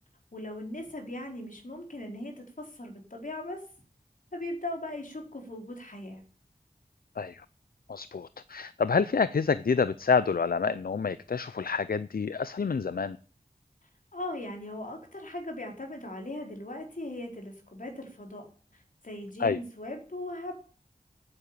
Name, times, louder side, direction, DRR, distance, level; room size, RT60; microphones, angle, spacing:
voice 1, 0.3-3.6 4.3-6.2 14.1-18.5 18.7-20.6, left 1 dB, 60° left, 4.8 m, -39 dB
voice 2, 7.9-13.2 19.4-19.6, left 5 dB, 80° left, 0.6 m, -28 dB
9.8 x 9.6 x 8.9 m
wide cardioid pair, 40°, 15 cm